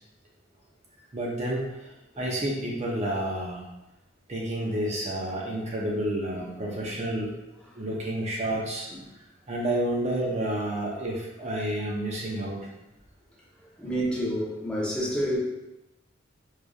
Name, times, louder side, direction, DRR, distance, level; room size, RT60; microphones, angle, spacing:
voice 1, 1.1-3.6 4.3-7.3 7.8-8.9 9.5-12.6, right 1 dB, 35° right, -3 dB, 0.6 m, -30 dB
voice 2, 7.7-8.0 8.9-9.0 13.8-15.4, equal, 5° left, -6 dB, 0.7 m, -30 dB
4.7 x 2.6 x 2.3 m, 0.95 s
head